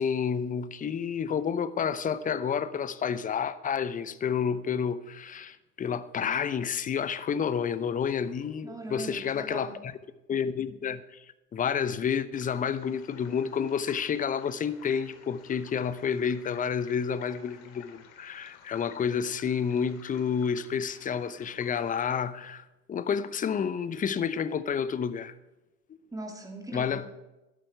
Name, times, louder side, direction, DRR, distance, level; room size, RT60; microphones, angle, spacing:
voice 1, 0.0-9.9 10.3-11.2 11.5-25.3 26.7-27.1, left 7 dB, 15° left, 0.8 m, -30 dB
voice 2, 8.6-9.8 26.1-27.1, right 2 dB, 5° right, 3.0 m, -40 dB
sound 1, 12.3-22.2, left 8 dB, 60° left, 2.3 m, -53 dB
13.0 x 11.5 x 4.6 m
hypercardioid pair, 90°, 46 cm